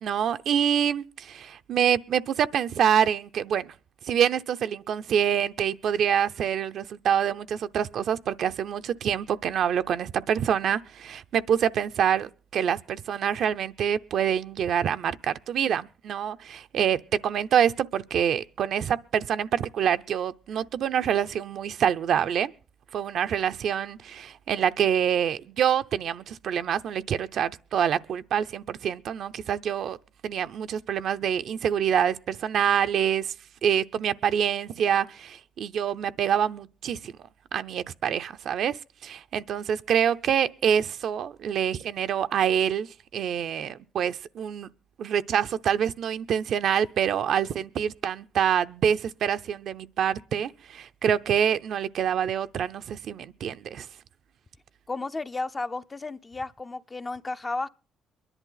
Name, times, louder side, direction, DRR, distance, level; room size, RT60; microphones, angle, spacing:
voice 1, 0.0-3.7 4.0-22.5 22.9-30.0 30.2-33.3 33.6-44.7 45.0-53.9, right 8 dB, 70° right, 0.6 m, -26 dB
voice 2, 54.9-57.7, left 3 dB, 25° left, 0.6 m, -33 dB
23.0 x 11.0 x 3.9 m
cardioid pair, 90°, 0 cm